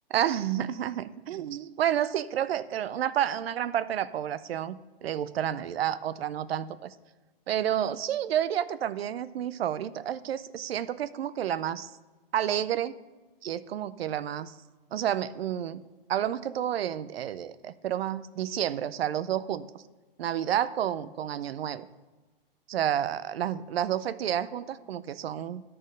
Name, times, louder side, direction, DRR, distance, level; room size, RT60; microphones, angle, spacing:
voice 1, 0.1-6.9 7.5-11.9 12.3-12.9 13.4-14.5 14.9-15.8 16.1-19.7 20.2-21.9 22.7-25.6, right 10 dB, 85° right, 15 dB, 0.5 m, -30 dB
12.5 x 4.4 x 5.1 m, 1.2 s
hypercardioid pair, 160°, 29 cm